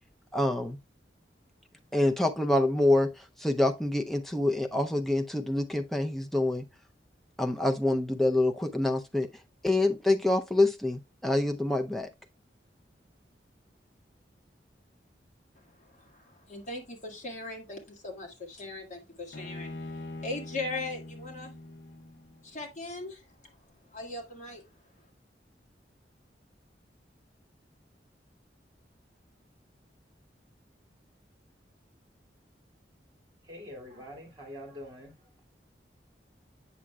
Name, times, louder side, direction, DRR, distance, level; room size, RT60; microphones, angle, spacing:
voice 1, 0.3-0.8 1.9-6.7 7.4-9.3 9.6-12.1, left 1 dB, ahead, 0.5 m, -26 dB
voice 2, 15.6-21.5 22.4-23.3 23.9-24.7, left 2 dB, 40° left, 1.8 m, -39 dB
Bowed string instrument, 19.3-22.6, left 2 dB, 80° left, 0.7 m, -43 dB
voice 3, 33.4-35.3, left 1 dB, 25° right, 2.1 m, -45 dB
8.4 x 6.1 x 2.2 m
head